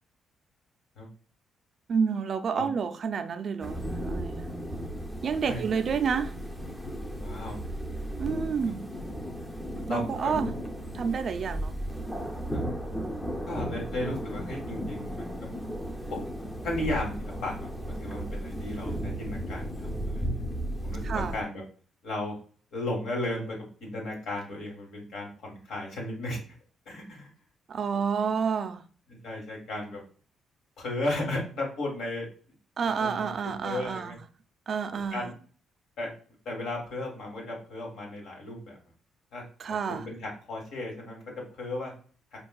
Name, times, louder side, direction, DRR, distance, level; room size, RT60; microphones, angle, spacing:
voice 1, 1.9-4.5 5.2-6.4 8.2-8.9 9.9-10.5 10.9-11.7 21.0-21.4 27.7-28.8 32.8-34.2 34.7-35.3 39.6-40.1, right 6 dB, 50° right, 0.4 m, -29 dB
sound 1, 3.6-21.4, equal, 10° left, 0.6 m, -35 dB
voice 2, 7.1-7.6 9.9-10.4 12.5-12.6 13.5-15.5 16.1-16.2 16.6-20.3 20.8-21.6 22.0-22.4 22.7-26.4 26.8-27.3 27.9-28.0 29.2-30.0 30.8-32.3 32.8-34.1 35.1-35.3 36.0-36.1 36.4-38.8 39.3-39.4 39.7-41.2 41.6-41.9, left 1 dB, 75° left, 1.6 m, -35 dB
5.3 x 2.3 x 2.3 m
cardioid pair, 90°, 0 cm